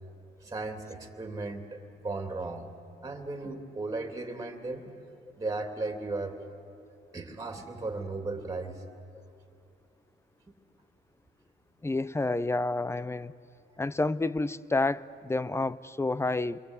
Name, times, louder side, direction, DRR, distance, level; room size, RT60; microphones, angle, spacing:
voice 1, 0.4-2.7 3.0-4.8 5.4-6.4 7.1-8.8, right 3 dB, 15° right, 4 dB, 3.0 m, -36 dB
voice 2, 11.8-13.3 13.8-16.6, left 2 dB, 15° left, 18 dB, 0.6 m, -29 dB
28.5 x 22.5 x 8.2 m, 2.5 s
cardioid pair, 90°, 20 cm